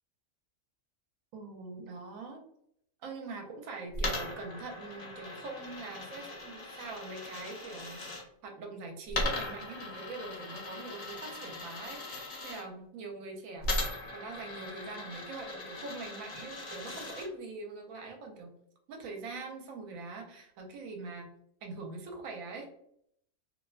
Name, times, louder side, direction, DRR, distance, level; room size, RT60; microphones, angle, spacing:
voice 1, 1.3-2.4 3.0-8.0 8.4-18.5 18.9-21.3 21.6-22.7, right 3 dB, 80° right, 3 dB, 1.0 m, -43 dB
Coin (dropping), 3.9-8.2 9.1-12.6 13.6-17.3, left 1 dB, 50° left, 0.9 m, -38 dB
2.7 x 2.1 x 2.3 m, 0.70 s
omnidirectional pair, 1.4 m